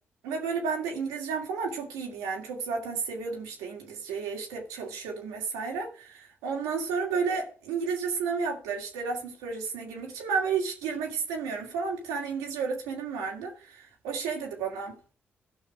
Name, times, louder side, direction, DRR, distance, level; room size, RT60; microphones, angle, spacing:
voice 1, 0.2-14.9, right 5 dB, 85° right, 2.4 m, -32 dB
14.0 x 5.9 x 4.9 m
hypercardioid pair, 45°, 6 cm